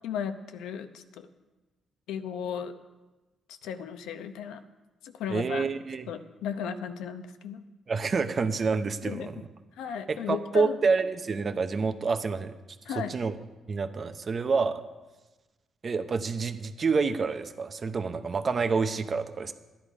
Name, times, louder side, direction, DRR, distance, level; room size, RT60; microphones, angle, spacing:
voice 1, 0.0-1.3 2.1-2.8 3.5-4.6 5.0-5.7 6.1-7.6 9.0-9.4 9.8-10.8 12.8-13.1, left 7 dB, 90° left, 9 dB, 0.8 m, -35 dB
voice 2, 5.3-6.1 7.9-9.5 10.1-12.6 13.0-13.3 13.7-14.8 15.8-19.5, right 4 dB, 40° right, 9 dB, 0.9 m, -28 dB
12.5 x 10.5 x 5.0 m, 1.1 s
cardioid pair, 90°, 0 cm